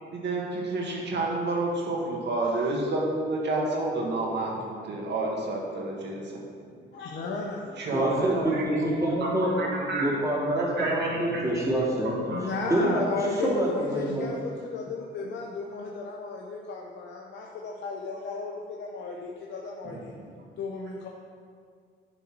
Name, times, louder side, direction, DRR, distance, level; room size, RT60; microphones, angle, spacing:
voice 1, 0.1-6.4 7.8-8.7 9.2-10.0 10.8-11.6 12.0-12.4 19.8-20.2, right 2 dB, 60° right, -1 dB, 1.6 m, -30 dB
voice 2, 6.9-7.8 12.3-20.1 20.6-21.1, left 3 dB, 65° left, -1 dB, 0.7 m, -34 dB
voice 3, 7.9-9.5 10.0-14.3, right 1 dB, 15° right, -6 dB, 2.0 m, -26 dB
10.0 x 4.1 x 4.5 m, 2.1 s
cardioid pair, 90°, 20 cm